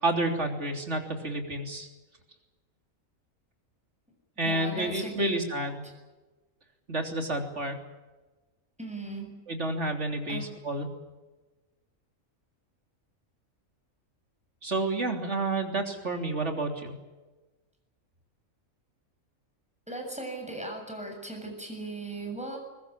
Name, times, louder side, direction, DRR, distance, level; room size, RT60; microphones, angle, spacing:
voice 1, 0.0-1.9 4.4-5.8 6.9-7.8 9.5-10.9 14.6-16.9, right 2 dB, 55° right, 4 dB, 3.7 m, -30 dB
voice 2, 4.4-5.7 8.8-9.3 10.3-10.5 19.9-22.6, right 2 dB, 5° right, 2 dB, 7.2 m, -38 dB
22.5 x 20.5 x 8.8 m, 1.2 s
omnidirectional pair, 1.4 m